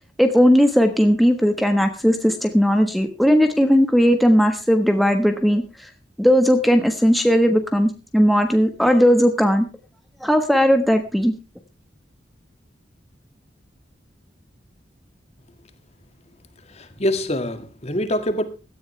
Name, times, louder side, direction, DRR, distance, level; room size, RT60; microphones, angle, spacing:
voice 1, 0.2-5.6 6.2-9.7 10.2-11.3, equal, ahead, 1.3 m, -17 dB
voice 2, 16.6-18.5, left 1 dB, 35° left, 2.0 m, -25 dB
17.0 x 14.0 x 3.3 m
head